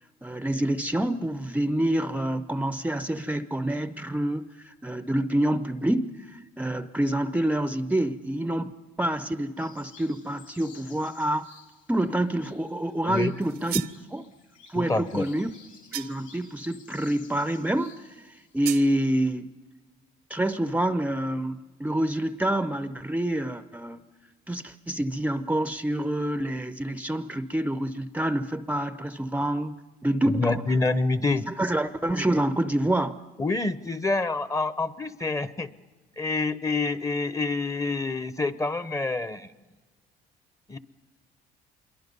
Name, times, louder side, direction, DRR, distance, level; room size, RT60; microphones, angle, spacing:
voice 1, 0.2-8.7 9.0-11.5 11.9-13.8 14.1-14.3 14.7-15.5 15.9-19.5 20.3-24.0 24.5-29.7 30.0-30.6 31.5-33.2, right 1 dB, 10° right, 12 dB, 0.6 m, -27 dB
sound 1, 9.6-18.8, left 5 dB, 50° left, 3.2 m, -54 dB
sound 2, 13.4-14.0 15.9-16.4 18.6-18.9, right 14 dB, 75° right, 0.7 m, -35 dB
voice 2, 14.8-15.3 30.2-31.4 33.4-35.7 36.2-39.5 40.7-40.8, left 3 dB, 20° left, 14 dB, 0.9 m, -27 dB
26.5 x 23.0 x 5.4 m, 1.3 s
cardioid pair, 110°, 17 cm